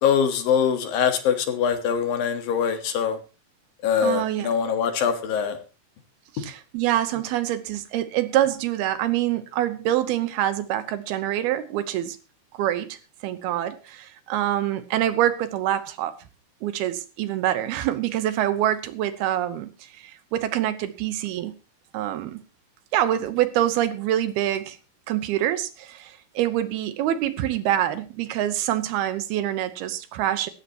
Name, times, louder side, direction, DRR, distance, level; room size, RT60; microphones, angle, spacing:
voice 1, 0.0-3.2 3.8-5.6, left 7 dB, 65° left, 8 dB, 3.1 m, -23 dB
voice 2, 4.0-4.5 6.3-12.2 12.6-16.1 16.6-21.5 21.9-22.4 22.9-24.8 25.1-30.5, right 12 dB, 80° right, 12 dB, 2.9 m, -25 dB
17.0 x 14.5 x 3.0 m, 0.33 s
omnidirectional pair, 4.6 m